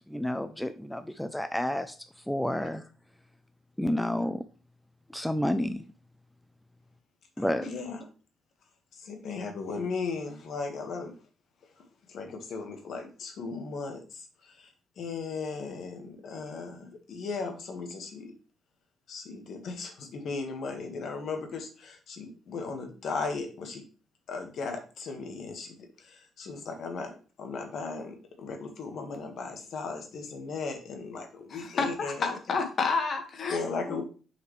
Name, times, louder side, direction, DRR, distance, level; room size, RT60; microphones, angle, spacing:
voice 1, 0.1-1.9 2.3-2.8 3.8-4.4 5.1-5.8 7.4-7.7, left 1 dB, 5° left, 9 dB, 0.4 m, -30 dB
voice 2, 7.4-8.0 8.9-11.1 12.1-14.7 15.0-18.3 19.1-23.8 24.3-32.3 33.5-34.0, left 4 dB, 65° left, 4 dB, 1.5 m, -37 dB
voice 3, 31.5-33.6 33.8-34.0, left 4 dB, 50° left, 5 dB, 1.6 m, -30 dB
6.4 x 4.9 x 3.2 m, 0.37 s
cardioid pair, 90°, 0 cm